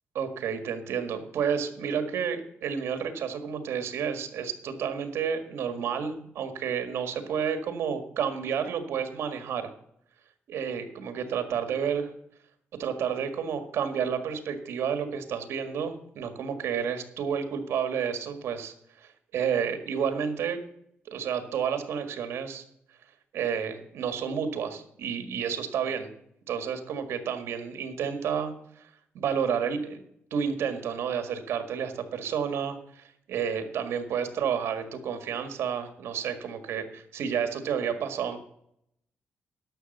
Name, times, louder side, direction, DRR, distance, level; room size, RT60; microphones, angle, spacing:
voice 1, 0.1-9.7 10.5-12.1 12.7-20.6 21.1-22.6 23.3-26.1 26.5-30.0 30.3-38.4, right 7 dB, 80° right, 8 dB, 1.8 m, -30 dB
11.5 x 6.9 x 6.7 m, 0.73 s
wide cardioid pair, 150°, 4 cm